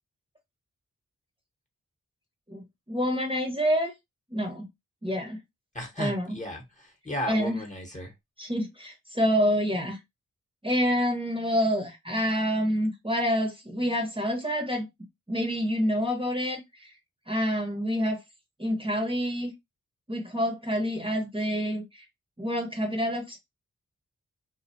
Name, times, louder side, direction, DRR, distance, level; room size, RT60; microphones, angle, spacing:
voice 1, 2.5-3.9 4.3-4.7 5.0-5.4 6.0-6.4 7.3-7.6 8.4-10.0 10.6-14.9 15.3-16.9 17.3-18.2 18.6-19.5 20.1-22.0 22.4-23.4, equal, 15° right, 0.9 m, -27 dB
voice 2, 5.7-8.1, left 1 dB, 25° left, 1.0 m, -35 dB
2.3 x 2.2 x 2.6 m
cardioid pair, 50°, 32 cm